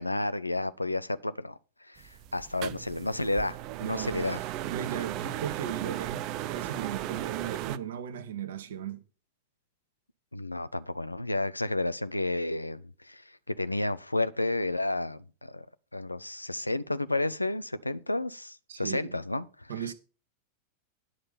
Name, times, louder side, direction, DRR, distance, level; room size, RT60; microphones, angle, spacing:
voice 1, 0.0-1.6 1.9-4.4 10.3-15.7 15.9-19.9, left 2 dB, 85° left, 0.5 m, -31 dB
sound 1, 2.0-7.8, right 13 dB, 40° right, 0.5 m, -36 dB
voice 2, 3.8-4.3 4.6-9.0 18.7-19.2 19.7-19.9, right 9 dB, 60° right, 1.1 m, -37 dB
10.5 x 5.3 x 5.7 m
figure-of-eight pair, 90°, 0 cm